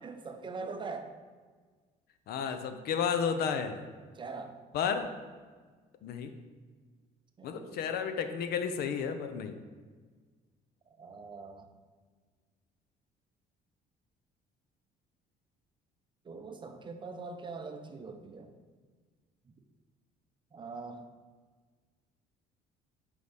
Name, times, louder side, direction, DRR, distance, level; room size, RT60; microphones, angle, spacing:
voice 1, 0.0-1.1 4.1-4.6 7.4-7.8 11.0-11.7 16.2-18.5 20.5-21.0, right 4 dB, 30° right, 6 dB, 0.5 m, -42 dB
voice 2, 2.3-3.8 4.7-5.1 6.0-6.3 7.4-9.6, left 7 dB, 65° left, 8 dB, 0.6 m, -32 dB
5.1 x 4.8 x 4.0 m, 1.5 s
cardioid pair, 110°, 17 cm